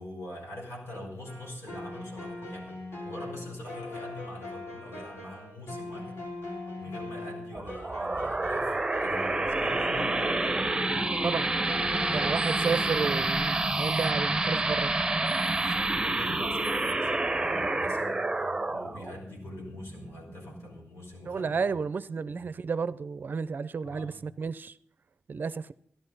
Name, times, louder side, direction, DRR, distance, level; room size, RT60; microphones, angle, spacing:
voice 1, 0.0-6.2 6.8-8.7 9.0-10.3 11.9-13.2 13.7-14.5 15.6-21.8 22.3-22.4 23.8-24.2, left 1 dB, 85° left, 5.3 m, -44 dB
sound 1, 1.3-12.3, left 2 dB, 60° left, 4.3 m, -41 dB
sound 2, 7.5-20.7, right 2 dB, 15° right, 0.8 m, -28 dB
voice 2, 11.2-11.6 12.0-14.9 16.3-16.4 21.3-24.8 25.3-25.7, right 5 dB, 45° right, 0.5 m, -32 dB
16.0 x 11.5 x 5.4 m
wide cardioid pair, 175°, 4 cm